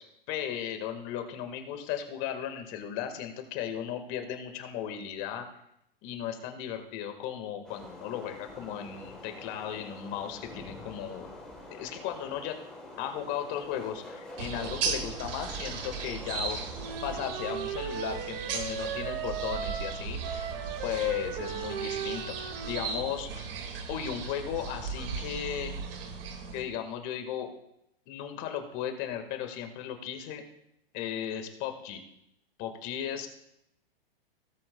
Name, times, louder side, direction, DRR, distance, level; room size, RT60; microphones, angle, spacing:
voice 1, 0.0-5.5 6.0-11.3 11.7-12.6 13.0-16.6 17.0-20.5 20.8-23.5 23.9-25.9 26.5-27.5 28.1-30.4 30.9-32.0 32.6-33.3, left 9 dB, 40° left, 6 dB, 1.7 m, -36 dB
sound 1, 7.6-17.0, left 1 dB, 5° left, 3.0 m, -46 dB
sound 2, 14.4-26.6, right 5 dB, 70° right, 2.1 m, -37 dB
Wind instrument woodwind instrument, 16.7-23.0, right 6 dB, 55° right, 1.6 m, -37 dB
17.5 x 7.8 x 2.3 m, 0.78 s
hypercardioid pair, 135°, 30 cm